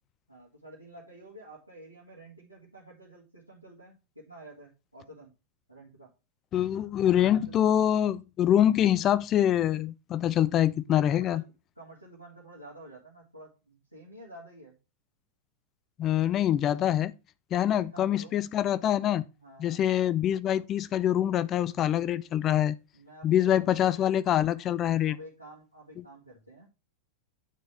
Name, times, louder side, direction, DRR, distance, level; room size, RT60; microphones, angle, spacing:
voice 1, 0.3-5.3 5.7-6.1 7.2-7.8 10.9-14.7 17.6-18.5 19.4-19.8 22.9-23.9 25.0-26.7, right 1 dB, 85° right, 1.7 m, -50 dB
voice 2, 6.5-11.4 16.0-17.1 17.5-19.3 19.6-22.8 23.2-25.2, left 11 dB, 30° left, 0.3 m, -25 dB
9.1 x 4.3 x 3.2 m
figure-of-eight pair, 90°, 0 cm